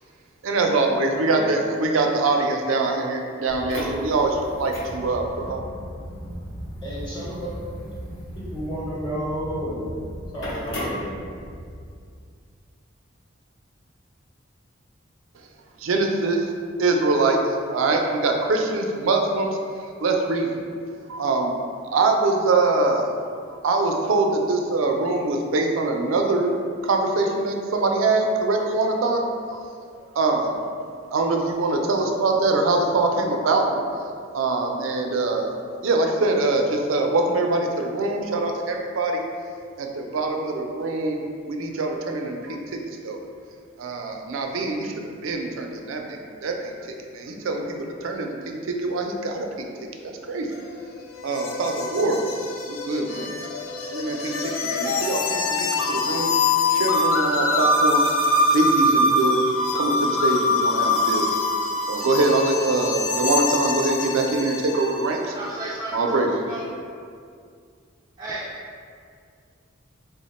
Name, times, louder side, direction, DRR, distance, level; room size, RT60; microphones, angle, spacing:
voice 1, 0.4-5.6 15.8-16.5 16.8-19.6 20.0-20.5 21.1-21.5 21.9-23.1 23.6-26.6 26.8-29.2 29.5-29.6 30.2-30.6 31.1-33.9 34.3-35.5 35.8-39.2 39.8-41.2 41.5-43.2 43.8-46.7 47.1-49.7 50.0-50.5 51.2-52.2 52.7-53.3 53.9-56.3 56.7-58.1 58.5-59.4 59.7-61.3 61.9-65.3 65.9-66.3, right 3 dB, 85° right, 2 dB, 0.4 m, -23 dB
voice 2, 1.3-1.8 6.8-7.5 8.5-9.8 10.3-11.1, equal, 25° left, -8 dB, 1.0 m, -31 dB
sound 1, 3.5-11.7, equal, 65° left, 0.8 m, -35 dB
sound 2, 50.5-65.1, left 2 dB, 80° left, 0.4 m, -24 dB
voice 3, 65.3-66.6 68.2-68.5, right 1 dB, 20° right, -6 dB, 0.3 m, -32 dB
3.3 x 2.1 x 4.1 m, 2.2 s
head